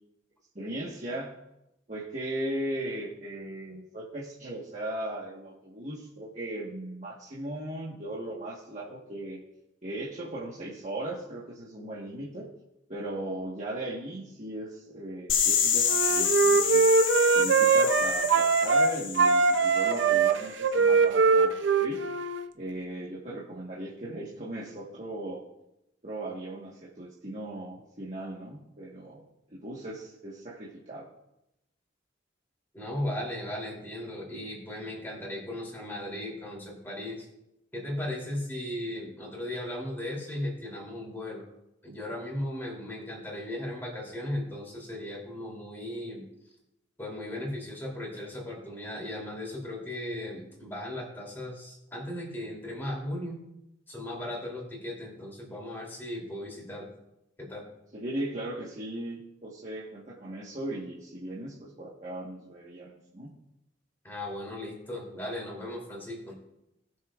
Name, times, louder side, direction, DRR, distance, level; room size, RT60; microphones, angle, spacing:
voice 1, 0.5-1.3 1.9-9.4 9.8-12.5 12.9-16.9 17.3-22.0 22.5-25.4 26.0-31.1 57.9-63.3, right 1 dB, 40° right, -6 dB, 1.4 m, -37 dB
sound 1, 15.3-20.1, left 7 dB, 85° left, 1.1 m, -28 dB
Wind instrument woodwind instrument, 15.8-18.9 19.2-22.5, right 4 dB, 70° right, 0.6 m, -22 dB
voice 2, 32.7-37.3 37.7-41.4 41.8-46.2 47.0-53.4 53.9-56.9 57.4-57.6 64.0-66.3, left 1 dB, 10° left, -3 dB, 3.1 m, -36 dB
19.0 x 6.5 x 2.5 m, 0.87 s
head